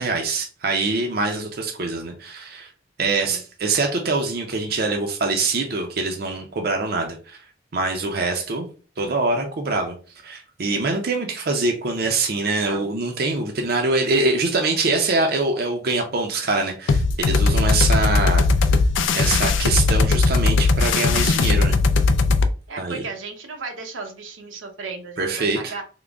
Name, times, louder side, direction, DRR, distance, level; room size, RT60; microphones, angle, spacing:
voice 1, 0.0-2.7 3.0-7.4 7.7-8.7 9.0-9.9 10.2-18.8 19.1-21.8 22.8-23.0 25.2-25.7, right 3 dB, 50° right, 3 dB, 0.5 m, -24 dB
voice 2, 12.6-12.9 22.7-25.8, right 4 dB, 85° right, 4 dB, 0.8 m, -35 dB
sound 1, 16.9-22.5, left 3 dB, 80° left, 0.4 m, -18 dB
3.7 x 2.0 x 3.4 m, 0.37 s
head